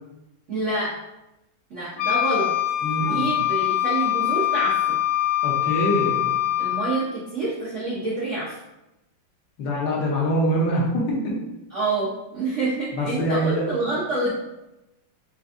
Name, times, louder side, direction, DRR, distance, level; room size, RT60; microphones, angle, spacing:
voice 1, 0.5-1.0 1.7-2.5 3.0-4.9 6.6-8.6 11.7-14.3, right 2 dB, 80° right, -6 dB, 0.6 m, -27 dB
Wind instrument woodwind instrument, 2.0-7.1, left 12 dB, 85° left, 1.5 m, -23 dB
voice 2, 2.8-3.4 5.4-6.3 9.6-11.4 12.9-13.9, equal, 65° left, -4 dB, 1.4 m, -24 dB
5.8 x 2.5 x 2.5 m, 0.93 s
omnidirectional pair, 2.3 m